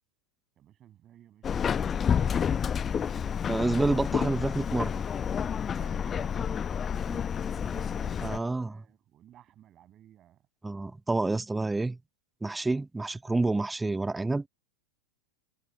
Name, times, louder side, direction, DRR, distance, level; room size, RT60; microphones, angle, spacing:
voice 1, 0.6-3.4 5.8-10.5, right 11 dB, 30° right, 7.9 m, -55 dB
Subway metro underground, 1.4-8.4, left 7 dB, 20° left, 0.9 m, -29 dB
voice 2, 3.5-5.0 8.2-8.8 10.6-12.0 12.4-14.5, right 2 dB, 10° right, 0.9 m, -28 dB
figure-of-eight pair, 90°, 0 cm